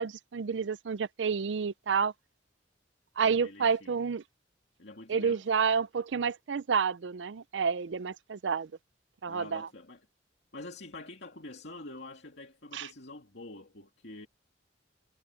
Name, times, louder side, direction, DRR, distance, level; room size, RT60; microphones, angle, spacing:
voice 1, 0.0-2.1 3.2-4.2 5.1-8.7 9.2-9.7 12.7-12.9, right 6 dB, 90° right, 0.5 m, -29 dB
voice 2, 3.2-3.9 4.8-5.4 9.3-10.1 10.5-14.3, left 2 dB, 70° left, 2.7 m, -46 dB
head